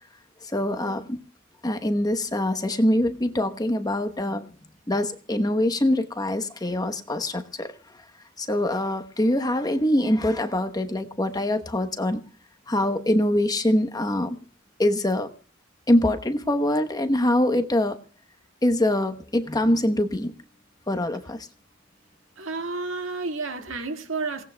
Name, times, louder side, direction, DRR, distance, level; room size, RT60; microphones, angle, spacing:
voice 1, 0.5-1.2 1.6-4.5 4.9-7.7 8.4-12.2 12.7-14.4 14.8-15.3 15.9-18.0 18.6-20.3 20.9-21.5, left 1 dB, 20° left, 1.0 m, -24 dB
voice 2, 22.4-24.5, right 3 dB, 75° right, 2.0 m, -31 dB
28.0 x 18.0 x 2.2 m
head